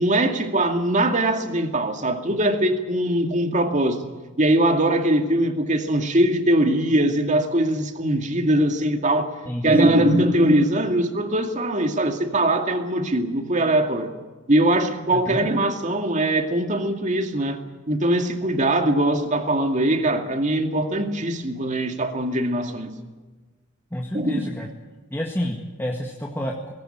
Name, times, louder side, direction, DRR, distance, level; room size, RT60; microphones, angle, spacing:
voice 1, 0.0-4.0 4.4-9.3 9.6-14.1 14.5-17.6 17.9-22.9 24.1-24.5, right 1 dB, 40° right, 5 dB, 2.3 m, -21 dB
voice 2, 9.5-10.2 15.3-15.4 23.9-24.7 25.1-26.7, equal, 10° left, 0 dB, 1.9 m, -29 dB
19.5 x 17.5 x 8.8 m, 1.3 s
head